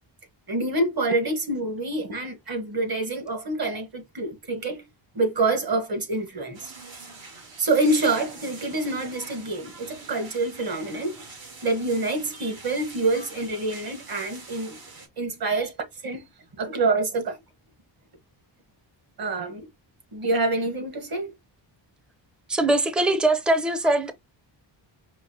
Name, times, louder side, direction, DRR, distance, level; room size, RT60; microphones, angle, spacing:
voice 1, 0.5-4.8 5.1-6.7 7.6-11.2 11.6-14.8 15.2-15.7 16.0-16.2 16.6-17.4 19.2-19.7 20.1-21.3, right 2 dB, 50° right, 1.4 m, -26 dB
sound 1, 6.5-15.1, right 3 dB, 75° right, 2.5 m, -44 dB
voice 2, 22.5-24.1, right 2 dB, ahead, 0.4 m, -22 dB
5.5 x 2.5 x 2.7 m
wide cardioid pair, 170°, 46 cm